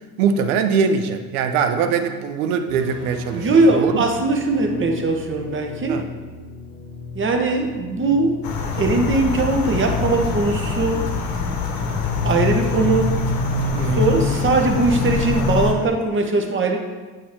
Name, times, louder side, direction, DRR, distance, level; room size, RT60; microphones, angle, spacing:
voice 1, 0.2-4.0 5.9-6.1 13.7-14.1, right 6 dB, 65° right, 8 dB, 0.7 m, -22 dB
sound 1, 2.7-9.5, left 4 dB, 25° left, 1.6 m, -38 dB
voice 2, 3.3-6.0 7.1-8.4 8.8-11.1 12.2-13.2 14.0-16.8, right 3 dB, 25° right, 4 dB, 1.0 m, -20 dB
sound 2, 8.4-15.7, left 4 dB, 50° left, 1.0 m, -23 dB
8.4 x 2.9 x 4.8 m, 1.3 s
figure-of-eight pair, 60°, 47 cm